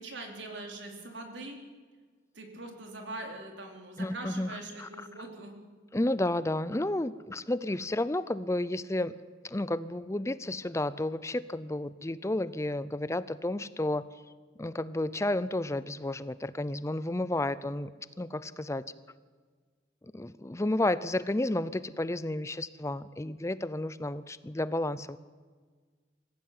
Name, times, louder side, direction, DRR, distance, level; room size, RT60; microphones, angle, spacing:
voice 1, 0.0-1.6 2.3-5.6, right 2 dB, 80° right, 3 dB, 4.2 m, -42 dB
voice 2, 4.0-4.9 5.9-9.2 9.4-14.1 14.6-17.9 18.2-18.9 20.0-25.2, left 1 dB, 15° left, 16 dB, 0.6 m, -31 dB
24.5 x 15.5 x 9.5 m, 1.5 s
head